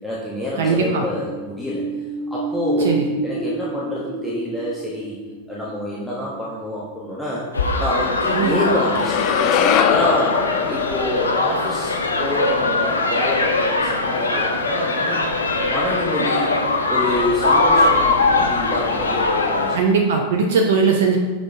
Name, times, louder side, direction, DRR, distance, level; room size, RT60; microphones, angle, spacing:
voice 1, 0.0-1.9 2.3-5.2 5.5-15.3 15.7-16.5 16.9-19.8, left 1 dB, ahead, -7 dB, 1.1 m, -27 dB
voice 2, 0.6-1.0 2.8-3.0 8.3-8.6 19.7-21.2, right 5 dB, 60° right, 1 dB, 0.6 m, -19 dB
sound 1, 1.1-7.3 7.7-7.8, right 2 dB, 15° right, 1.8 m, -29 dB
sound 2, 7.5-19.8, left 3 dB, 75° left, 0.7 m, -21 dB
sound 3, 8.9-13.2, left 9 dB, 40° left, 0.4 m, -23 dB
6.2 x 5.0 x 3.4 m, 1.4 s
figure-of-eight pair, 90°, 0 cm